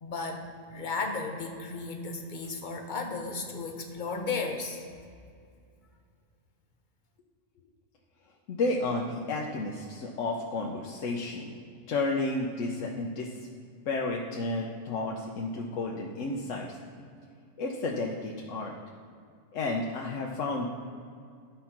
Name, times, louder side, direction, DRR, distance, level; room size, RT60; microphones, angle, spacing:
voice 1, 0.0-0.4 0.7-4.9, left 4 dB, 40° left, 3 dB, 1.0 m, -34 dB
voice 2, 8.5-11.6 11.9-13.4 13.9-16.7 17.6-18.7 19.5-20.7, left 2 dB, 80° left, -1 dB, 1.1 m, -32 dB
11.5 x 4.4 x 5.8 m, 2.3 s
omnidirectional pair, 1.3 m